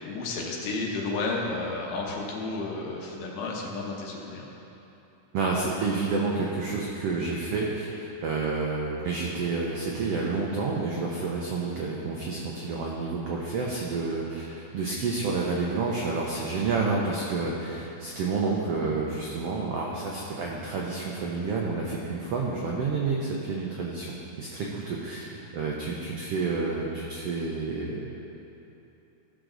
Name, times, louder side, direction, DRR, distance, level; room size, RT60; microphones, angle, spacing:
voice 1, 0.0-4.5, left 3 dB, 90° left, -2 dB, 2.8 m, -32 dB
voice 2, 5.3-28.1, right 4 dB, 85° right, -2 dB, 1.3 m, -29 dB
15.0 x 6.2 x 3.9 m, 3.0 s
omnidirectional pair, 3.8 m